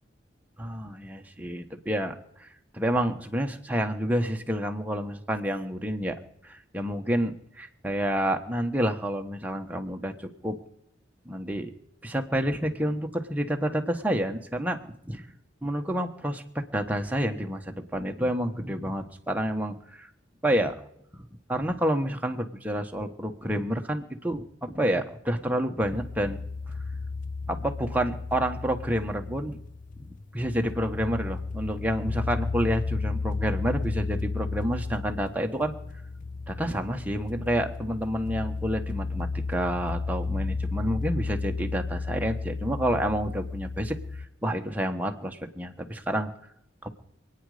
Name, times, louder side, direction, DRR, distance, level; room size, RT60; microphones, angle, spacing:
voice 1, 0.6-2.1 2.4-2.5 2.7-6.2 6.4-10.6 11.2-11.7 12.0-15.3 15.6-20.1 20.4-20.8 21.1-21.2 21.5-26.4 27.5-29.6 30.0-30.1 30.3-35.7 36.5-44.0 44.4-46.3 46.8-46.9, equal, 10° right, 4 dB, 1.3 m, -29 dB
sound 1, 25.8-44.3, left 3 dB, 45° left, 0.7 m, -33 dB
27.0 x 9.5 x 5.0 m, 0.76 s
head